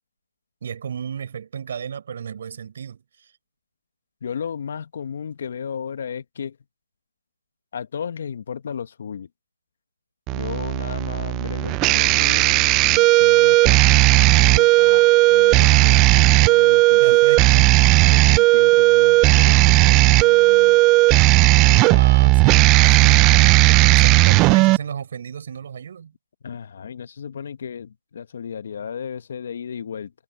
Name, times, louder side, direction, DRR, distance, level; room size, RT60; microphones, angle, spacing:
voice 1, 0.6-3.3 17.0-17.8 21.9-26.1, right 7 dB, 45° right, 5.6 m, -32 dB
voice 2, 4.2-6.6 7.7-9.3 10.3-17.2 18.0-20.8 21.6-22.4 22.9-23.1 26.4-30.1, left 7 dB, 45° left, 1.6 m, -34 dB
sound 1, 10.3-24.8, right 23 dB, 15° right, 0.4 m, -15 dB
figure-of-eight pair, 160°, 0 cm